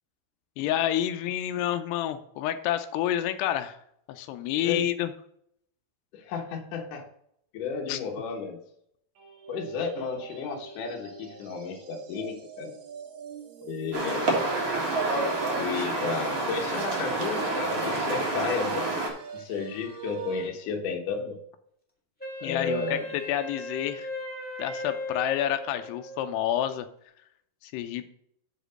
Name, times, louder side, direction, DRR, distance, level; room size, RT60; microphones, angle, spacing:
voice 1, 0.6-3.8 4.1-5.1 7.9-8.0 22.4-24.1 24.6-26.9 27.6-28.0, left 11 dB, 90° left, 9 dB, 2.7 m, -29 dB
voice 2, 6.1-7.1 7.5-8.6 9.5-12.7 13.6-14.3 15.6-18.8 19.3-21.4 22.4-23.1, left 5 dB, 65° left, 2 dB, 2.6 m, -33 dB
sound 1, 9.2-20.5, right 7 dB, 75° right, 3.5 m, -43 dB
sound 2, 13.9-19.1, right 2 dB, 45° right, 2.1 m, -28 dB
Wind instrument woodwind instrument, 22.2-26.5, left 1 dB, 5° left, 0.7 m, -38 dB
7.6 x 5.1 x 6.3 m, 0.70 s
omnidirectional pair, 4.6 m